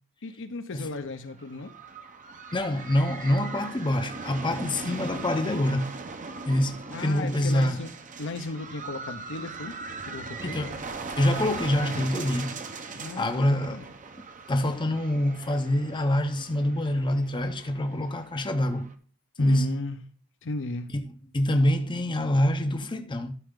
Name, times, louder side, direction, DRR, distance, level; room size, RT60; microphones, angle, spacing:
voice 1, 0.2-1.7 6.9-7.9 8.2-10.6 13.0-13.9 19.4-20.0 20.4-20.9, left 3 dB, 60° left, 0.8 m, -36 dB
sound 1, 1.3-18.9, right 4 dB, 35° right, 0.7 m, -40 dB
voice 2, 2.5-5.9 6.5-7.8 10.4-10.8 11.2-12.6 12.8-13.9 14.5-18.9 19.4-19.7 21.3-23.3, left 1 dB, 20° left, 0.7 m, -26 dB
12.5 x 4.5 x 3.7 m
head